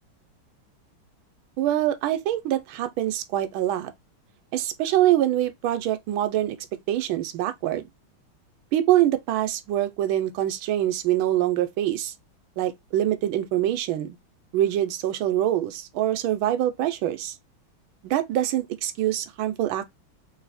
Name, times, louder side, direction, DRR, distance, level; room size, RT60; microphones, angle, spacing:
voice 1, 1.6-3.9 4.5-6.6 6.9-7.8 8.7-12.1 12.6-14.2 14.5-17.3 18.0-19.8, right 12 dB, 75° right, 1.4 m, -24 dB
3.5 x 2.7 x 4.1 m
omnidirectional pair, 2.3 m